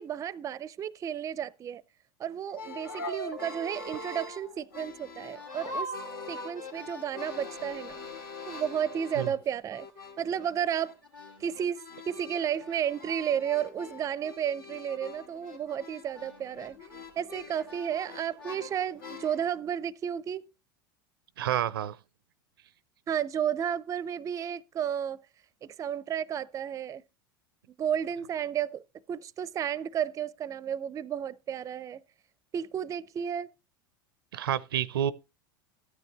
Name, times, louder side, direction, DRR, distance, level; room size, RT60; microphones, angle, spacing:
voice 1, 0.0-1.8 2.2-5.9 6.3-8.1 8.5-9.9 10.2-10.9 11.4-16.8 17.2-20.5 23.1-25.2 25.6-27.0 27.8-28.8 29.1-32.0 32.5-33.5, right 9 dB, 30° right, 0.5 m, -32 dB
sound 1, 2.5-9.5 9.7-19.5, left 2 dB, 80° left, 2.3 m, -42 dB
voice 2, 21.4-22.0 34.3-35.1, right 11 dB, 80° right, 0.4 m, -29 dB
13.0 x 9.6 x 3.0 m
hypercardioid pair, 90°, 12 cm